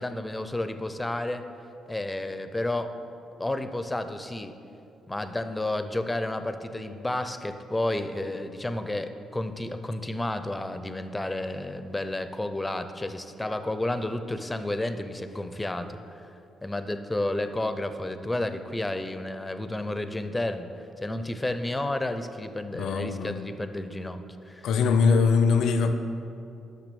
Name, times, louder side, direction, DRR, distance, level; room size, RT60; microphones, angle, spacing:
voice 1, 0.0-1.4 1.9-2.9 3.4-4.6 5.1-16.0 16.6-20.7 21.0-24.7, left 1 dB, 15° left, 9 dB, 0.5 m, -31 dB
voice 2, 22.7-23.4 24.6-25.9, left 5 dB, 75° left, 9 dB, 0.5 m, -22 dB
6.0 x 5.8 x 6.9 m, 2.7 s
cardioid pair, 90°, 0 cm